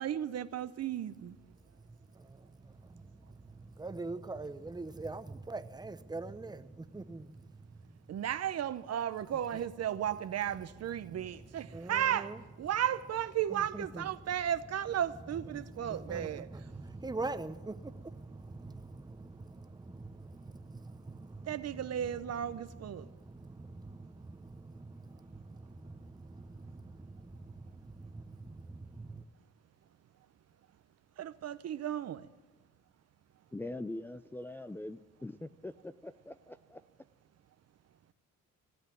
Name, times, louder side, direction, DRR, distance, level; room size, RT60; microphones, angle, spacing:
voice 1, 0.0-1.3 8.1-16.5 21.5-23.1 31.2-32.3, right 10 dB, 55° right, 0.8 m, -34 dB
voice 2, 2.2-3.0 3.5-7.4 9.5-9.6 11.2-11.3 11.7-12.4 13.5-14.1 15.5-22.2 22.5-29.2, right 3 dB, 15° right, 0.9 m, -44 dB
voice 3, 33.5-36.8, left 2 dB, 5° left, 0.4 m, -43 dB
16.5 x 8.2 x 9.1 m
cardioid pair, 90°, 30 cm